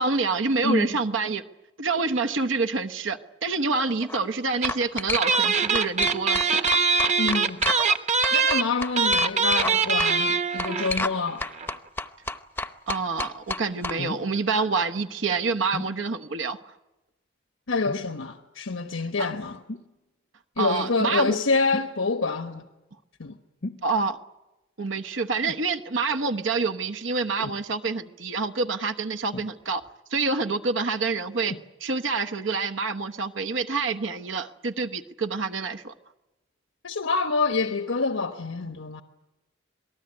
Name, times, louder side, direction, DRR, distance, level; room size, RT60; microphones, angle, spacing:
voice 1, 0.0-1.4 1.8-6.6 12.9-16.6 19.2-19.3 20.6-21.4 23.8-24.2 24.8-29.8 30.1-31.5 31.8-35.9, right 4 dB, 70° right, 1.1 m, -27 dB
voice 2, 0.6-0.9 7.2-7.6 8.3-11.4 17.7-19.6 20.6-22.6 23.2-23.3 36.8-39.0, left 3 dB, 80° left, 1.1 m, -27 dB
sound 1, 3.9-4.2 4.6-5.5 5.7-8.0 8.2-9.7 10.0-10.1 10.6-11.2 11.4-14.0, left 2 dB, 10° left, 0.8 m, -30 dB
sound 2, 4.6-4.9 5.1-11.0 11.3-11.4 11.6-11.7, right 4 dB, 35° right, 1.2 m, -23 dB
sound 3, 14.0-14.3 15.7-16.0 17.8-18.2 19.7-19.9 21.7-22.0 23.6-23.9 25.4-25.7 27.4-27.6 29.3-29.9 31.4-31.7 32.5-32.6, left 2 dB, 50° left, 0.8 m, -36 dB
27.0 x 19.0 x 9.7 m
head